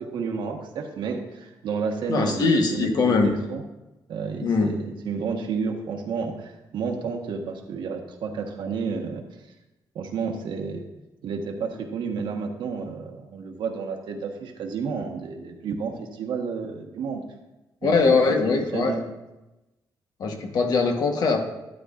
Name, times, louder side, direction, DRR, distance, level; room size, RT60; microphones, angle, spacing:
voice 1, 0.0-3.6 4.1-9.2 9.9-10.8 11.2-17.2 17.8-19.0, right 5 dB, 80° right, 2 dB, 1.3 m, -31 dB
voice 2, 2.1-3.3 4.4-4.7 17.8-19.0 20.2-21.4, left 4 dB, 55° left, 4 dB, 1.2 m, -21 dB
12.0 x 9.8 x 2.5 m, 1.0 s
wide cardioid pair, 165°, 8 cm